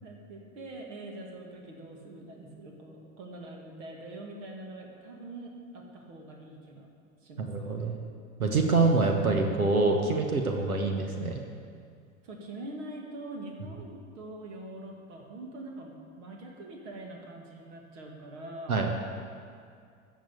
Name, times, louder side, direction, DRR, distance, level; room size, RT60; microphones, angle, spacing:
voice 1, 0.0-6.9 7.2-8.0 12.2-18.9, right 1 dB, 55° right, 0 dB, 2.3 m, -44 dB
voice 2, 7.4-7.9 8.4-11.4 18.7-18.9, right 3 dB, 80° right, 3 dB, 1.3 m, -25 dB
13.5 x 6.4 x 8.5 m, 2.2 s
figure-of-eight pair, 80°, 43 cm